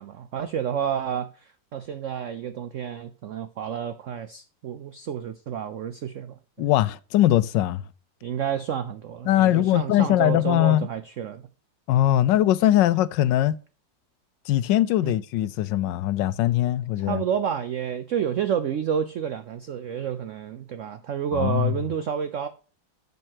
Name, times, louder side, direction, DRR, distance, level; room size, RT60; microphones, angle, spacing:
voice 1, 0.0-6.7 8.2-11.4 15.0-15.2 17.0-22.5, right 8 dB, 85° right, 0.6 m, -30 dB
voice 2, 6.6-7.8 9.3-10.9 11.9-13.6 14.5-17.2 21.3-21.7, left 13 dB, 75° left, 1.2 m, -21 dB
12.0 x 5.5 x 2.9 m
omnidirectional pair, 2.0 m